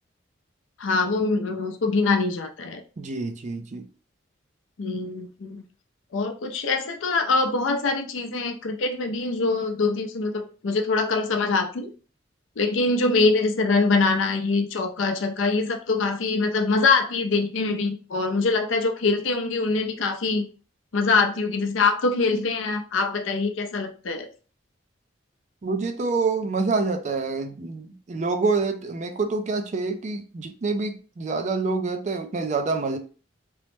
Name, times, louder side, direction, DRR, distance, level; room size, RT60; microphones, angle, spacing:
voice 1, 0.8-2.8 4.8-5.6 6.1-11.9 12.6-20.5 20.9-24.3, left 3 dB, 75° left, 0.5 m, -24 dB
voice 2, 3.0-3.8 25.6-33.0, right 4 dB, 35° right, 0.3 m, -27 dB
3.1 x 2.0 x 3.1 m
head